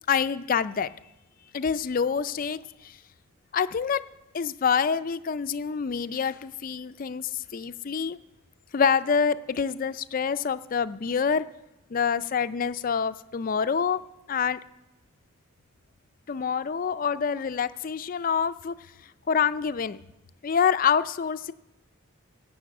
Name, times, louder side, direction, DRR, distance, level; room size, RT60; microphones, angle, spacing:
voice 1, 0.1-0.9 1.5-3.0 3.5-4.0 4.3-8.2 8.7-11.4 11.9-14.0 14.3-14.6 16.3-18.7 19.0-20.0 20.4-21.5, left 6 dB, 40° left, 14 dB, 0.4 m, -26 dB
15.0 x 5.5 x 8.7 m, 0.97 s
head